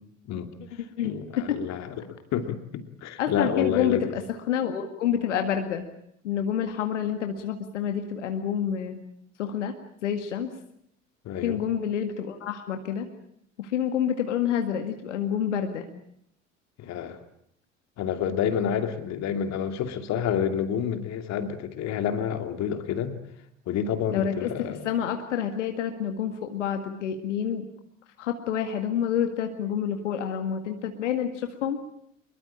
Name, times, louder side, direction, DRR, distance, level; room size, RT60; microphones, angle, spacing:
voice 1, 1.0-4.1 11.2-11.6 16.8-17.2 18.0-23.2 23.7-24.8, left 8 dB, 45° left, 8 dB, 2.6 m, -29 dB
voice 2, 3.2-5.8 6.2-9.0 9.4-9.7 10.0-10.5 11.4-13.1 13.6-15.9 24.1-27.7 28.2-31.8, left 9 dB, 70° left, 6 dB, 2.0 m, -28 dB
24.5 x 22.5 x 8.7 m, 0.73 s
figure-of-eight pair, 65°, 38 cm